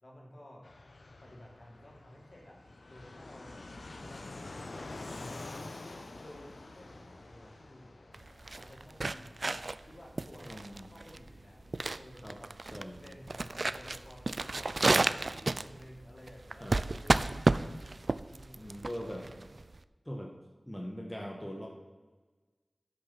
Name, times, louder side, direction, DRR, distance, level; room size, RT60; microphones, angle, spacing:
voice 1, 0.0-0.7 1.2-2.6 2.9-3.5 3.9-5.7 6.1-8.1 8.5-12.5 13.0-17.4 18.2-18.8 19.1-19.5, left 1 dB, 60° left, -3 dB, 3.2 m, -54 dB
Fixed-wing aircraft airplane, 0.6-19.0, left 2 dB, 80° left, 0.8 m, -50 dB
sound 1, 8.1-19.8, right 2 dB, 65° right, 0.4 m, -32 dB
voice 2, 10.4-10.9 12.2-12.4 12.7-13.0 16.6-16.8 18.5-19.3 20.0-20.3 20.7-21.7, equal, 15° left, 0 dB, 1.5 m, -41 dB
11.0 x 6.8 x 5.9 m, 1.3 s
wide cardioid pair, 40°, 0 cm